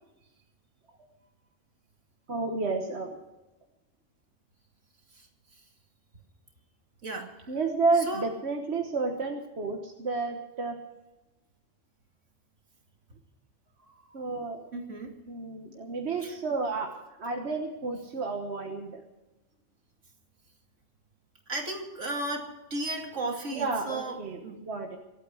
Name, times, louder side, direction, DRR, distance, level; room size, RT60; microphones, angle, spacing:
voice 1, 2.3-3.2 7.5-10.8 14.1-14.6 15.3-16.9 17.2-19.0 23.5-25.0, right 3 dB, 60° right, 2 dB, 1.6 m, -31 dB
voice 2, 7.0-7.5 8.1-8.3 13.8-13.9 14.7-15.1 16.2-16.4 21.5-24.6, right 2 dB, 75° right, 2 dB, 2.9 m, -35 dB
24.0 x 8.9 x 6.3 m, 1.0 s
omnidirectional pair, 1.3 m